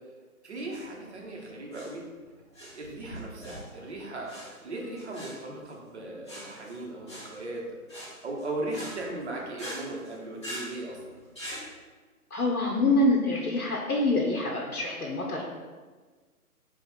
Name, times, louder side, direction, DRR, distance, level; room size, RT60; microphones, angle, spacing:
voice 1, 0.4-2.0 2.6-7.8 8.2-11.0, right 2 dB, 50° right, -2 dB, 1.1 m, -37 dB
sound 1, 0.6-11.7, equal, 20° left, 0.7 m, -44 dB
voice 2, 12.3-15.4, left 2 dB, 75° left, -1 dB, 0.8 m, -26 dB
4.8 x 2.5 x 4.2 m, 1.4 s
figure-of-eight pair, 145°, 45 cm